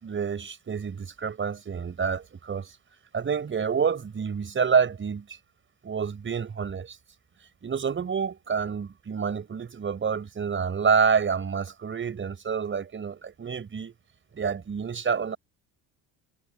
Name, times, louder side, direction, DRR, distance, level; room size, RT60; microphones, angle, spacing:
voice 1, 0.0-2.7 3.1-5.3 5.8-7.0 7.6-13.9 14.3-15.4, right 6 dB, 30° right, 5.5 m, -28 dB
cardioid pair, 120°, 40 cm